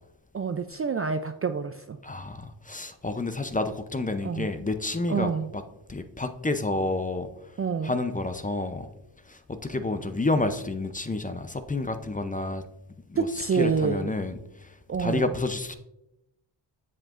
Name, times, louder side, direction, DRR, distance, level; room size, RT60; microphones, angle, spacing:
voice 1, 0.3-2.0 4.2-4.5 5.1-5.5 7.6-7.9 13.2-14.1 14.9-15.3, right 5 dB, 30° right, 8 dB, 0.4 m, -27 dB
voice 2, 2.0-5.6 5.9-7.3 7.8-8.9 9.3-12.6 13.1-13.3 13.5-14.7 15.0-15.7, left 2 dB, 15° left, 9 dB, 0.5 m, -29 dB
7.7 x 7.4 x 2.5 m, 0.87 s
cardioid pair, 75°, 49 cm